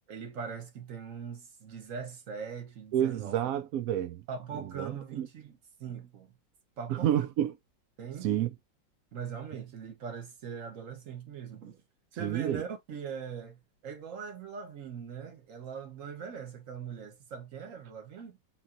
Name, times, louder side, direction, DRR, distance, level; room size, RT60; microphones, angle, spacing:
voice 1, 0.1-3.4 4.3-6.3 6.8-7.1 8.0-8.3 9.1-11.8 12.1-18.4, right 6 dB, 50° right, 1.3 m, -41 dB
voice 2, 2.9-4.2 4.8-5.3 6.9-7.5 8.2-8.5 12.2-12.6, right 11 dB, 80° right, 0.7 m, -29 dB
4.2 x 2.9 x 3.8 m
omnidirectional pair, 2.0 m